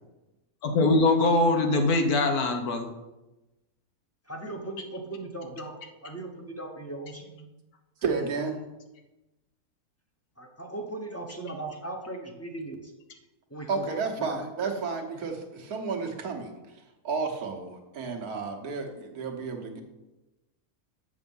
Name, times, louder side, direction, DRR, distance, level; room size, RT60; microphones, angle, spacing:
voice 1, 0.6-2.9, left 2 dB, 80° left, 5 dB, 1.5 m, -22 dB
voice 2, 4.2-5.7 6.0-7.5 10.4-12.9 13.5-14.4, right 2 dB, 10° left, 2 dB, 0.9 m, -38 dB
voice 3, 8.0-8.6 13.7-19.8, right 4 dB, 75° right, 3 dB, 1.6 m, -32 dB
7.1 x 7.0 x 5.4 m, 1.0 s
omnidirectional pair, 1.6 m